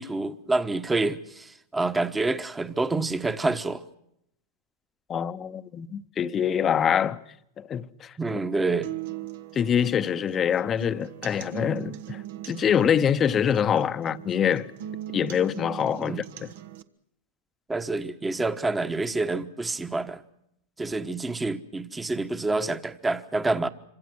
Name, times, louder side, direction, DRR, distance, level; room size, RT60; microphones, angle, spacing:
voice 1, 0.0-3.8 8.2-8.9 16.0-16.2 17.7-20.2 20.8-23.7, right 3 dB, 10° right, 1.2 m, -27 dB
voice 2, 5.1-7.2 7.6-8.4 9.5-14.7 15.1-16.5, left 8 dB, 25° left, 0.9 m, -25 dB
sound 1, 8.8-16.8, right 12 dB, 65° right, 1.3 m, -40 dB
26.5 x 25.0 x 6.3 m
hypercardioid pair, 125°, 0 cm